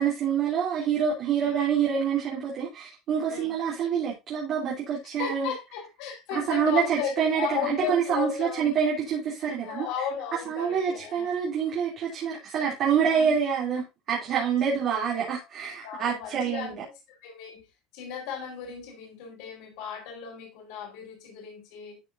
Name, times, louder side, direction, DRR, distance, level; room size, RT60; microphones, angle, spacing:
voice 1, 0.0-5.5 6.3-9.9 10.5-16.8, right 7 dB, 40° right, 3.0 m, -27 dB
voice 2, 5.2-8.7 9.6-11.3 13.0-13.3 14.6-14.8 15.1-15.5 15.8-17.7 17.9-22.0, left 7 dB, 70° left, 4.4 m, -35 dB
12.5 x 5.5 x 2.7 m
cardioid pair, 165°, 0 cm